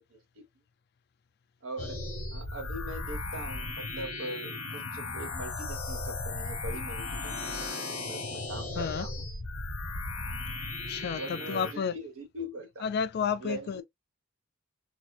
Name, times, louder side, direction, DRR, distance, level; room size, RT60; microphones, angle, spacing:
voice 1, 1.6-2.0 2.3-9.1 11.2-12.9 13.4-13.8, right 1 dB, 70° right, 1.0 m, -41 dB
sound 1, 1.8-11.7, left 2 dB, 80° left, 0.9 m, -36 dB
voice 2, 8.8-9.1 10.9-11.9 12.8-13.8, left 6 dB, 50° left, 0.3 m, -31 dB
2.8 x 2.0 x 2.2 m
head